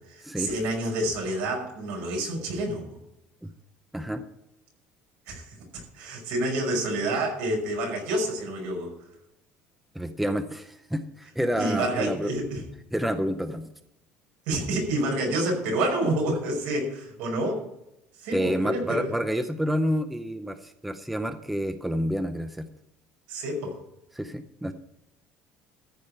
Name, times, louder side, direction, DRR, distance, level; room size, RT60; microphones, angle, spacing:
voice 1, 0.0-2.9 5.3-5.5 5.7-8.9 11.5-12.6 14.5-17.6 18.2-19.1 23.3-23.8, right 1 dB, 80° right, 0 dB, 5.5 m, -28 dB
voice 2, 3.9-4.2 9.9-12.3 12.9-13.6 18.3-22.7 24.1-24.7, equal, 5° right, 9 dB, 0.5 m, -29 dB
14.0 x 5.2 x 8.7 m, 0.84 s
cardioid pair, 175°, 3 cm